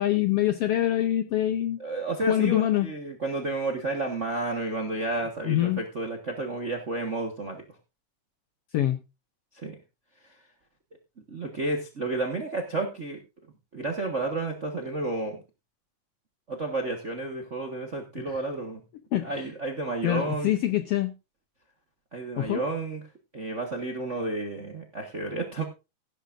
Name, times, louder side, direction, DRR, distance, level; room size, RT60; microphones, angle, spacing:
voice 1, 0.0-1.8 2.3-2.9 5.4-5.8 8.7-9.0 18.3-18.4 19.1-19.5 20.0-21.1 22.4-22.6, left 13 dB, 75° left, 9 dB, 1.4 m, -25 dB
voice 2, 1.8-7.6 9.5-9.8 10.2-10.4 11.3-13.2 13.7-15.4 16.5-18.8 19.2-20.5 22.1-23.0 23.3-25.6, right 2 dB, 45° right, 3 dB, 0.9 m, -31 dB
16.5 x 10.5 x 2.5 m, 0.27 s
omnidirectional pair, 3.5 m